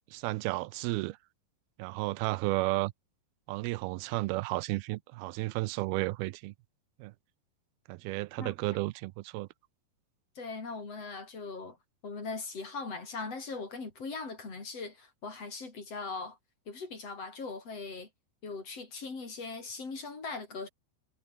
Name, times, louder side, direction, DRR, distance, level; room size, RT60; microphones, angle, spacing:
voice 1, 0.1-1.2 1.8-2.9 3.5-6.5 7.0-7.1 7.9-9.5, right 21 dB, 90° right, 2.6 m, -33 dB
voice 2, 10.4-11.8 12.0-16.4 16.7-18.1 18.4-20.7, left 4 dB, 40° left, 5.7 m, -40 dB
omnidirectional pair, 4.3 m